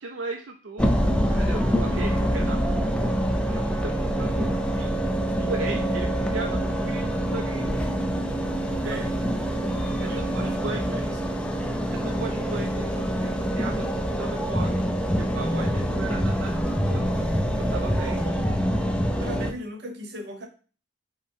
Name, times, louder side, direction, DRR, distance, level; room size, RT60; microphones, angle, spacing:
voice 1, 0.0-3.1 3.5-4.9 5.5-7.8 8.8-9.0 10.0-11.0 11.9-13.8 14.2-14.9 15.2-17.1 17.5-18.2, right 3 dB, 80° right, 3 dB, 0.5 m, -37 dB
sound 1, 0.8-19.5, equal, 5° left, 0.4 m, -25 dB
voice 2, 8.8-9.1 10.0-11.5 15.5-15.8 18.0-18.6 19.2-20.5, right 1 dB, 65° right, 4 dB, 1.0 m, -39 dB
5.6 x 2.1 x 4.5 m, 0.38 s
head